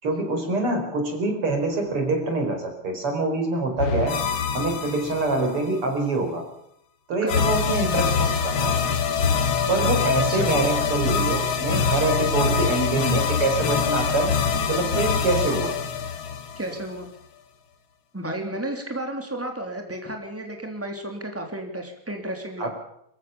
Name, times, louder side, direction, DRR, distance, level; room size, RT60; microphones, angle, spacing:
voice 1, 0.0-4.2 4.5-6.4 7.1-8.8 9.7-14.3 14.7-15.8 22.6-22.7, right 2 dB, 90° right, 4 dB, 5.6 m, -25 dB
sound 1, 3.8-5.6 7.3-17.0, left 6 dB, 70° left, 2.3 m, -24 dB
voice 2, 16.5-17.1 18.1-22.7, right 1 dB, 5° right, 3 dB, 3.4 m, -32 dB
26.0 x 14.5 x 7.1 m, 0.74 s
omnidirectional pair, 2.4 m